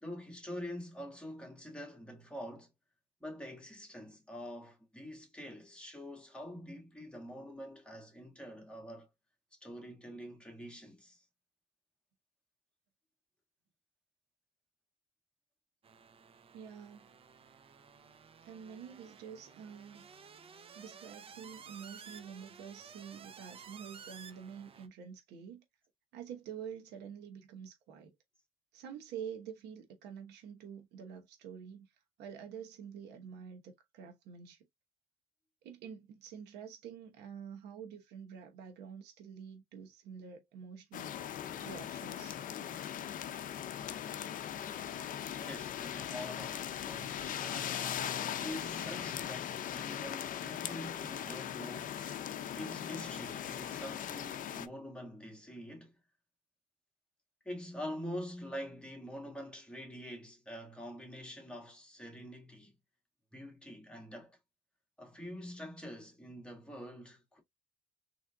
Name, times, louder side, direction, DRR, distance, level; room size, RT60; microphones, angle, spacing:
voice 1, 0.0-2.7 3.2-9.1 9.5-11.2 45.3-52.0 52.5-55.9 57.5-62.8 63.3-64.4 65.0-67.4, equal, 5° left, 1.7 m, -45 dB
sound 1, 15.8-24.9, right 6 dB, 35° right, 0.6 m, -54 dB
voice 2, 16.5-17.1 18.4-20.1 20.7-25.6 26.1-28.1 28.7-31.9 32.2-34.6 35.6-41.1 41.6-42.3, right 7 dB, 80° right, 1.1 m, -47 dB
sound 2, 40.9-54.7, left 10 dB, 55° left, 0.6 m, -39 dB
3.7 x 3.3 x 2.3 m
cardioid pair, 110°, 17 cm